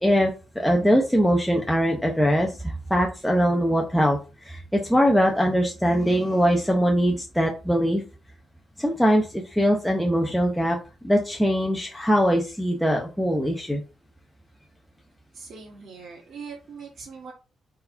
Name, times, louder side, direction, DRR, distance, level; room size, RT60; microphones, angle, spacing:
voice 1, 0.0-8.0 8.8-13.8, equal, ahead, 1 dB, 0.8 m, -22 dB
voice 2, 15.3-17.3, right 5 dB, 55° right, -3 dB, 1.8 m, -41 dB
4.6 x 4.2 x 5.5 m, 0.32 s
wide cardioid pair, 160°, 0 cm